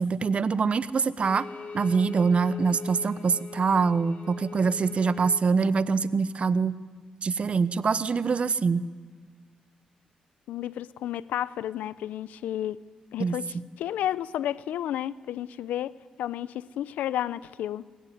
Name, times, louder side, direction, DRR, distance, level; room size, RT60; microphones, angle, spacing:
voice 1, 0.0-1.5 1.7-6.7 7.2-8.9 13.2-13.6, right 5 dB, 50° right, 15 dB, 1.0 m, -24 dB
Bowed string instrument, 1.2-5.4, left 3 dB, 70° left, 3.8 m, -42 dB
voice 2, 10.5-12.8 13.1-17.9, left 11 dB, 85° left, 18 dB, 0.6 m, -32 dB
22.5 x 20.5 x 9.2 m, 1.5 s
supercardioid pair, 55°, 3 cm